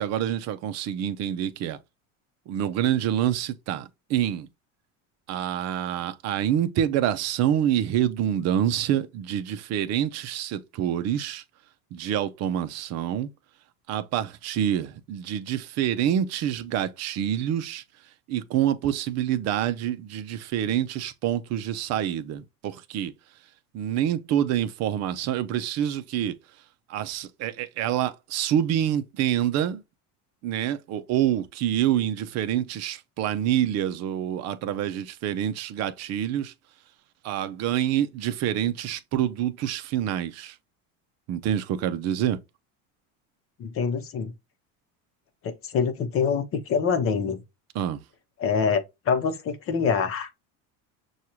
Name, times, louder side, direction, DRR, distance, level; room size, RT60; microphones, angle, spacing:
voice 1, 0.0-1.8 2.5-4.5 5.3-11.4 11.9-13.3 13.9-17.8 18.3-23.1 23.7-26.4 26.9-29.8 30.4-36.5 37.2-40.6 41.3-42.4 47.7-48.0, right 10 dB, 45° right, 0.6 m, -27 dB
voice 2, 43.6-44.3 45.4-47.4 48.4-50.3, left 6 dB, 35° left, 0.9 m, -25 dB
6.3 x 2.4 x 2.8 m
cardioid pair, 140°, 38 cm